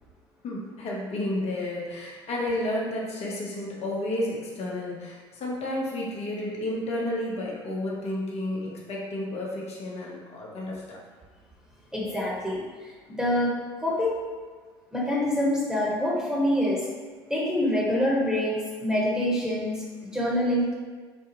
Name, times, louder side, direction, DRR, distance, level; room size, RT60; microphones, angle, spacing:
voice 1, 0.4-11.0, left 1 dB, 50° left, -4 dB, 1.1 m, -31 dB
voice 2, 11.9-13.5 13.8-14.2 14.9-16.8 17.3-19.8 20.1-20.7, left 1 dB, 5° right, -6 dB, 1.2 m, -26 dB
4.3 x 2.3 x 3.0 m, 1.5 s
hypercardioid pair, 65°, 14 cm